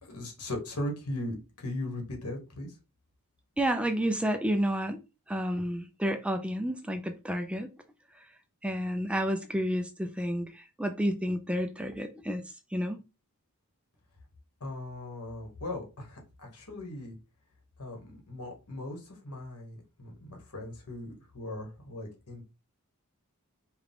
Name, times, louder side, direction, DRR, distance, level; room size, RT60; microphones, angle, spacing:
voice 1, 0.0-2.8 14.6-17.2 17.8-22.4, left 1 dB, 90° left, 1.5 m, -38 dB
voice 2, 3.6-7.7 8.2-8.3 8.6-12.4 12.7-13.0, equal, 5° right, 0.3 m, -30 dB
4.8 x 2.4 x 3.6 m
head